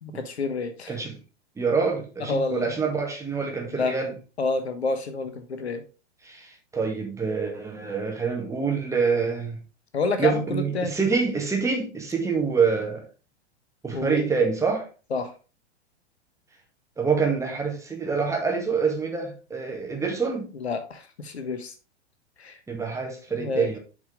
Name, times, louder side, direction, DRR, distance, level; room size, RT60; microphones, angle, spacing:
voice 1, 0.0-1.0 2.2-2.7 3.7-4.0 4.4-5.8 9.9-11.0 13.9-14.3 15.1-15.3 20.5-21.7 22.4-22.6 23.3-23.7, left 4 dB, 70° left, 1.3 m, -29 dB
voice 2, 1.6-4.1 6.2-9.6 10.2-13.1 13.8-14.9 17.0-20.5 22.7-23.8, right 5 dB, 10° right, 2.0 m, -26 dB
8.0 x 5.0 x 3.7 m
figure-of-eight pair, 100°, 34 cm